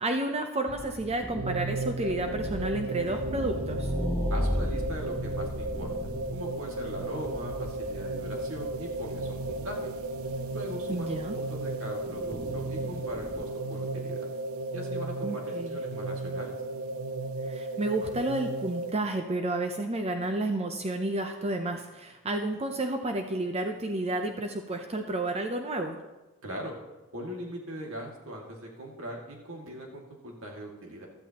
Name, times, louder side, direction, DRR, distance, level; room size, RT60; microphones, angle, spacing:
voice 1, 0.0-3.9 10.9-11.4 15.2-15.8 17.5-26.0, right 2 dB, 30° right, 5 dB, 0.7 m, -31 dB
sound 1, 0.7-13.5, left 1 dB, 10° left, 0.7 m, -36 dB
sound 2, 1.3-18.9, right 2 dB, 90° right, 0.6 m, -35 dB
voice 2, 4.3-5.9 6.3-9.9 10.5-14.3 14.7-16.5 26.4-26.7 27.1-31.1, equal, 70° right, 0 dB, 2.2 m, -40 dB
15.5 x 12.0 x 3.0 m, 1.1 s
head